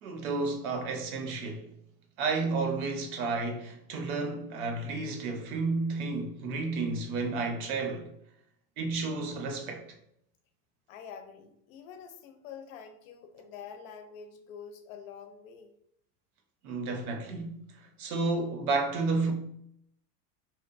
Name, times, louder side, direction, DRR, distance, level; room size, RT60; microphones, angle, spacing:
voice 1, 0.0-1.7 2.2-8.1 8.8-9.8 16.6-19.3, right 3 dB, 80° right, 0.7 m, -31 dB
voice 2, 10.9-15.7, left 7 dB, 70° left, 0.5 m, -46 dB
2.8 x 2.1 x 2.4 m
supercardioid pair, 170°, 43 cm